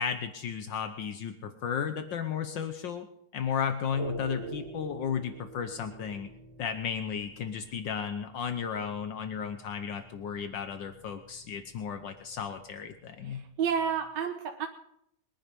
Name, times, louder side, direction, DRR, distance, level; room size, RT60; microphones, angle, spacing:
voice 1, 0.0-3.1 3.3-6.3 6.6-13.4, left 7 dB, 70° left, 8 dB, 1.6 m, -34 dB
sound 1, 3.9-14.1, right 3 dB, 20° right, 3.0 m, -47 dB
voice 2, 13.2-14.7, right 7 dB, 65° right, 4 dB, 1.7 m, -30 dB
22.0 x 10.0 x 5.3 m, 0.73 s
omnidirectional pair, 2.1 m